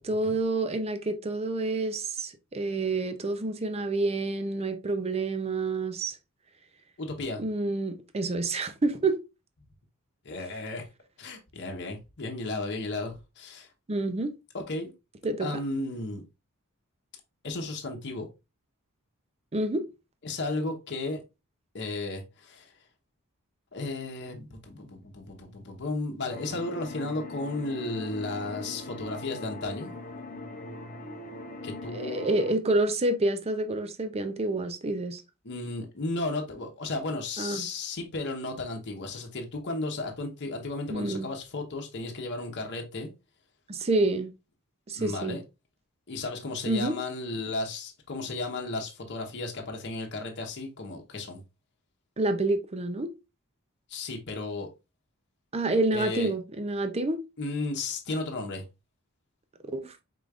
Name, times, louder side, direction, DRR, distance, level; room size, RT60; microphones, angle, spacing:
voice 1, 0.0-6.2 7.4-9.2 13.9-14.3 15.2-15.5 19.5-19.9 31.9-35.2 37.4-37.7 40.9-41.3 43.7-44.3 44.9-45.4 46.7-46.9 52.2-53.1 55.5-57.2 59.6-59.9, right 2 dB, 30° right, 0.6 m, -28 dB
voice 2, 7.0-7.4 10.2-10.8 11.2-13.7 14.5-14.9 15.4-16.2 17.4-18.3 20.2-21.2 21.7-22.7 23.7-29.9 31.6-32.3 35.4-43.1 45.0-45.4 46.1-51.4 53.9-54.7 55.9-56.3 57.4-58.6, left 2 dB, 55° left, 0.9 m, -34 dB
sound 1, 26.3-32.5, left 2 dB, 35° left, 0.7 m, -41 dB
5.0 x 3.8 x 2.4 m
head